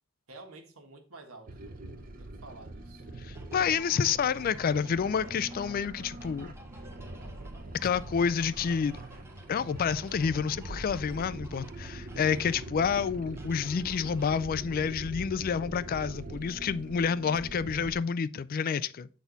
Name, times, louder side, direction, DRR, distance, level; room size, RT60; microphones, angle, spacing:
voice 1, 0.3-3.1, right 3 dB, 85° right, 1.5 m, -50 dB
sound 1, 1.5-17.9, right 1 dB, 40° right, 0.7 m, -43 dB
voice 2, 3.2-6.5 7.8-9.0 9.5-19.1, left 6 dB, 40° left, 0.3 m, -29 dB
sound 2, 3.3-14.4, right 1 dB, 10° right, 0.9 m, -56 dB
8.5 x 4.1 x 3.9 m
head